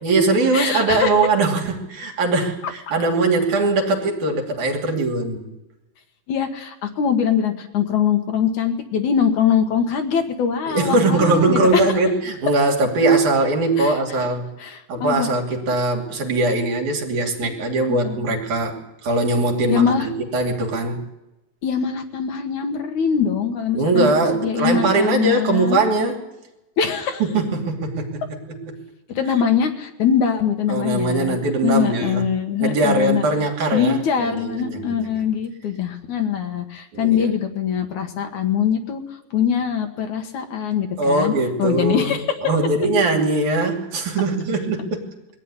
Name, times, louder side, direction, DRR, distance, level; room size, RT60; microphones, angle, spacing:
voice 1, 0.0-5.5 10.7-14.5 14.9-18.8 19.0-21.0 23.8-26.2 27.2-28.2 28.5-28.8 30.7-32.2 32.6-35.2 36.9-37.3 41.0-42.2 42.4-45.0, right 2 dB, 60° right, 2 dB, 3.9 m, -21 dB
voice 2, 0.5-1.1 6.3-11.8 13.8-13.9 14.6-15.3 18.0-18.2 19.7-20.1 21.6-24.1 24.4-25.8 26.8-27.2 29.2-31.4 31.6-33.3 33.7-39.0 39.3-41.3 41.6-42.2, left 7 dB, 65° left, 5 dB, 2.7 m, -22 dB
22.0 x 15.0 x 9.8 m, 0.95 s
omnidirectional pair, 3.9 m